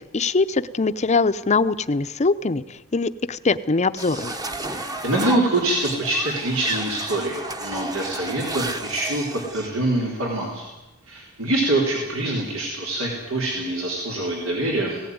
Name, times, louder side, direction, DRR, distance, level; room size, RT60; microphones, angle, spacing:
voice 1, 0.1-2.6 2.9-4.4, left 3 dB, 35° left, 12 dB, 0.7 m, -22 dB
sound 1, 4.0-9.7, right 2 dB, 20° right, 1.1 m, -32 dB
voice 2, 4.6-10.6 11.1-15.1, right 1 dB, 85° right, -1 dB, 3.8 m, -25 dB
17.5 x 17.5 x 9.5 m, 1.0 s
head